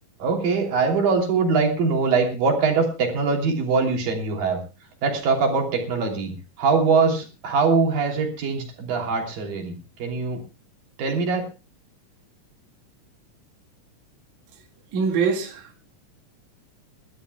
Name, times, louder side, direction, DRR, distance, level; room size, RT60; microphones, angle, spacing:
voice 1, 0.2-4.6 5.0-9.7 10.0-10.4 11.0-11.5, right 4 dB, 90° right, 4.8 m, -22 dB
voice 2, 14.9-15.8, right 5 dB, 65° right, 3.3 m, -24 dB
29.5 x 12.5 x 2.3 m
omnidirectional pair, 3.9 m